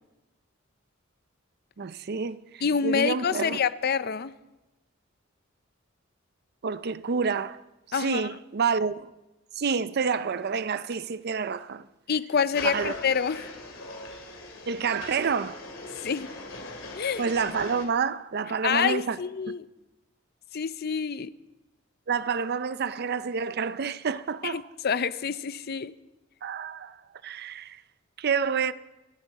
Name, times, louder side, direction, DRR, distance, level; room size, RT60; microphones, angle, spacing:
voice 1, 1.8-3.6 6.6-7.6 7.9-9.1 9.6-11.9 12.6-12.9 14.7-15.6 17.2-19.2 22.1-24.6 26.4-27.8 28.2-28.7, right 5 dB, 50° right, 0.5 m, -28 dB
voice 2, 2.6-4.3 7.9-8.2 12.1-13.5 16.0-16.3 17.0-17.2 18.6-19.7 20.5-21.3 24.4-25.9, left 6 dB, 50° left, 0.6 m, -27 dB
sound 1, 12.5-17.9, left 2 dB, 75° left, 3.1 m, -40 dB
27.5 x 12.5 x 4.1 m
head